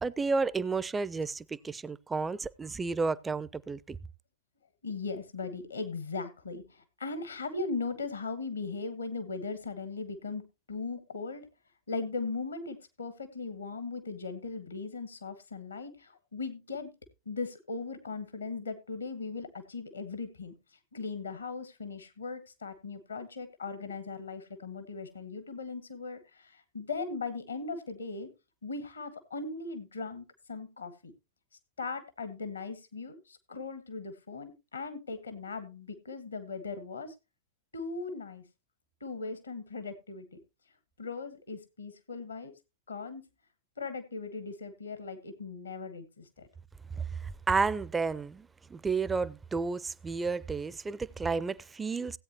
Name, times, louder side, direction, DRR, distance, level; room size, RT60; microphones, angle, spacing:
voice 1, 0.0-4.0 47.2-52.2, right 4 dB, 15° right, 0.5 m, -31 dB
voice 2, 4.8-11.5 11.9-16.9 17.2-20.5 20.9-28.3 28.6-31.1 31.8-37.1 37.7-38.4 39.0-40.4 41.0-42.5 42.9-43.3 43.8-46.3, left 4 dB, 75° left, 1.4 m, -38 dB
17.0 x 8.5 x 2.9 m
figure-of-eight pair, 90°, 0 cm